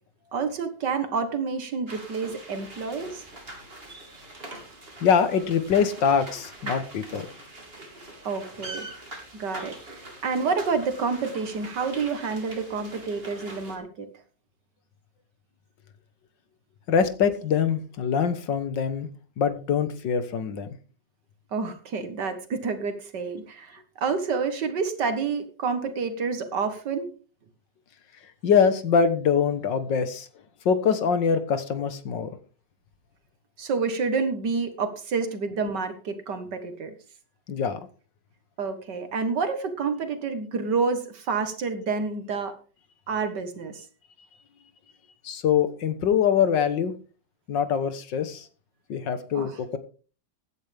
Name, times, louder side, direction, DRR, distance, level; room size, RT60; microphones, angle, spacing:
voice 1, 0.3-3.3 8.2-8.9 9.3-14.1 21.5-27.1 33.6-36.9 38.6-42.5 43.1-43.8 49.3-49.6, right 5 dB, 75° right, 8 dB, 2.1 m, -29 dB
sound 1, 1.9-13.8, right 2 dB, 30° right, 3.2 m, -42 dB
voice 2, 5.0-7.3 16.9-19.1 19.4-20.7 28.4-30.3 30.7-32.3 37.5-37.8 45.2-46.9 47.5-48.5 48.9-49.8, left 7 dB, 85° left, 11 dB, 2.0 m, -23 dB
16.0 x 10.5 x 3.5 m, 0.37 s
omnidirectional pair, 1.9 m